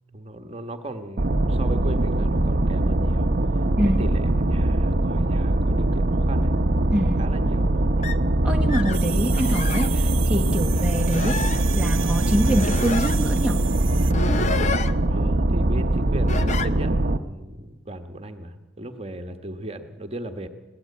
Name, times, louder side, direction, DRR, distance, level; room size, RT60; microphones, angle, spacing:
voice 1, 0.1-3.3 3.8-6.5 7.2-7.9 15.1-20.5, right 1 dB, 30° right, 6 dB, 1.2 m, -36 dB
sound 1, 1.2-17.2, right 1 dB, 50° right, 0.8 m, -22 dB
voice 2, 3.7-4.0 6.9-7.3 8.4-13.7, equal, 5° right, -1 dB, 1.1 m, -25 dB
sound 2, 8.0-8.2 8.7-9.0 9.3-9.9 10.5-10.6 11.1-11.6 12.4-13.2 14.1-14.9 16.3-16.7, left 4 dB, 35° left, 0.7 m, -30 dB
sound 3, 8.9-14.1, right 13 dB, 85° right, 0.9 m, -35 dB
21.0 x 17.5 x 8.4 m, 1.2 s
head